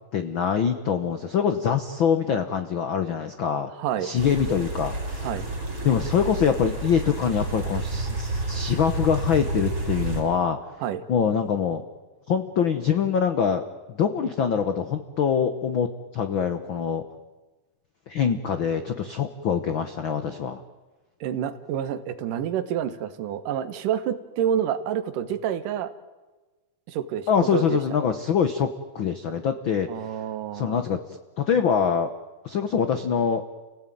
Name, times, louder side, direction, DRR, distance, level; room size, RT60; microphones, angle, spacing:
voice 1, 0.1-3.7 4.0-5.3 5.8-10.6 11.1-11.8 12.3-13.6 13.9-17.0 18.1-20.6 27.3-29.9 30.5-31.0 31.4-32.1 32.4-33.5, left 7 dB, 70° left, 9 dB, 1.1 m, -24 dB
voice 2, 3.8-4.1 5.2-5.5 10.8-11.0 21.2-25.9 26.9-27.8 29.9-30.8, right 9 dB, 75° right, 10 dB, 2.8 m, -28 dB
sound 1, 4.2-10.2, right 2 dB, 30° right, 5.7 m, -30 dB
29.5 x 16.5 x 9.3 m, 1.2 s
omnidirectional pair, 3.8 m